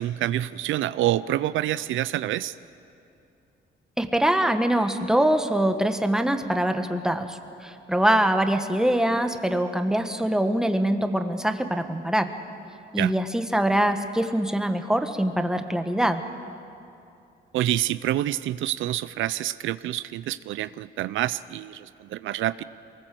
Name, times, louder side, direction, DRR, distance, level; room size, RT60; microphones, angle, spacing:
voice 1, 0.0-2.5 13.0-13.2 17.5-22.6, right 13 dB, 80° right, 16 dB, 0.5 m, -27 dB
voice 2, 4.0-12.3 12.9-16.2, right 1 dB, 5° right, 7 dB, 1.5 m, -23 dB
23.0 x 19.5 x 7.7 m, 2.6 s
cardioid pair, 90°, 20 cm